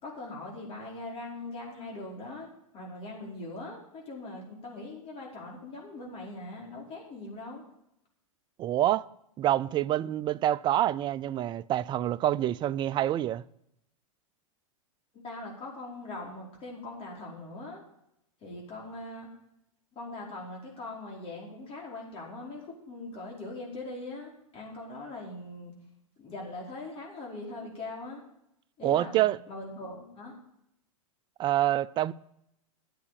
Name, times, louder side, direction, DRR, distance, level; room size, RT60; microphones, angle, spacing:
voice 1, 0.0-7.6 15.1-17.8 18.4-19.3 19.9-25.7 26.2-28.2 28.8-30.4, left 2 dB, 35° left, 5.0 m, -41 dB
voice 2, 8.6-9.1 9.4-13.4 28.8-29.4 31.4-32.1, right 13 dB, 25° right, 0.4 m, -26 dB
11.5 x 8.2 x 7.0 m
hypercardioid pair, 110°, 17 cm